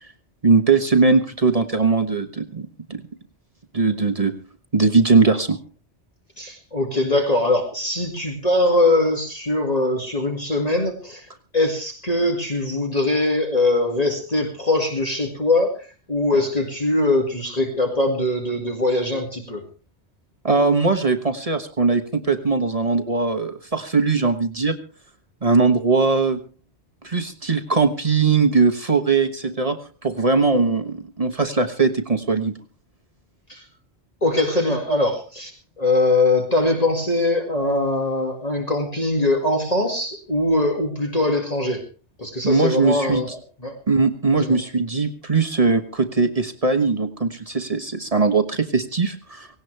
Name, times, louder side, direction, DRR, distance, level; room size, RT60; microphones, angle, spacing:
voice 1, 0.4-3.0 3.7-4.3 4.7-5.6 20.4-24.8 25.4-26.4 27.0-29.8 30.0-32.5 42.4-43.3 43.9-49.5, right 4 dB, 35° right, 8 dB, 1.2 m, -20 dB
voice 2, 6.4-11.3 11.5-19.6 33.5-33.6 34.2-35.5 35.8-41.8 42.2-43.4 43.6-43.8 44.3-44.6, left 2 dB, 35° left, 2 dB, 2.2 m, -22 dB
17.5 x 17.5 x 3.3 m, 0.35 s
omnidirectional pair, 1.1 m